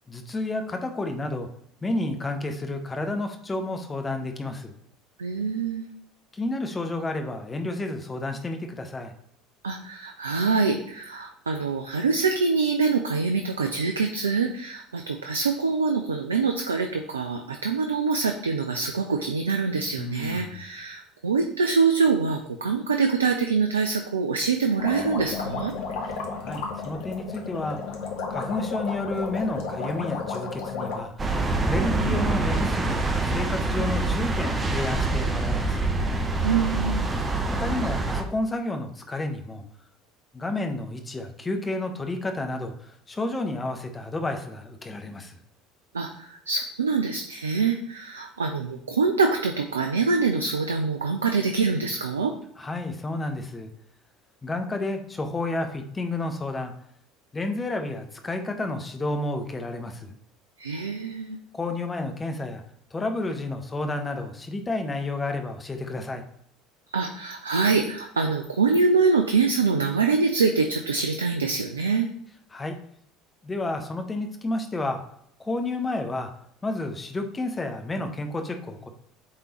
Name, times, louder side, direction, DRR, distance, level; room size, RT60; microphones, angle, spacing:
voice 1, 0.1-1.5 1.8-4.7 6.3-9.1 20.0-20.5 26.4-27.8 28.3-31.4 31.6-35.9 37.6-39.6 40.3-45.4 52.6-53.7 54.4-56.7 57.3-60.1 61.5-62.6 62.9-66.2 72.5-72.8 73.4-75.0 75.4-76.3 76.6-78.9, left 2 dB, 20° left, 5 dB, 1.0 m, -31 dB
voice 2, 5.2-5.9 9.6-25.7 36.4-37.1 45.9-52.3 60.6-61.4 66.9-72.1, right 4 dB, 80° right, 5 dB, 0.4 m, -25 dB
sound 1, 24.8-31.0, left 4 dB, 60° left, 1.1 m, -33 dB
sound 2, 31.2-38.2, right 2 dB, 25° right, 0.9 m, -25 dB
8.7 x 3.7 x 3.0 m, 0.67 s
figure-of-eight pair, 65°, 0 cm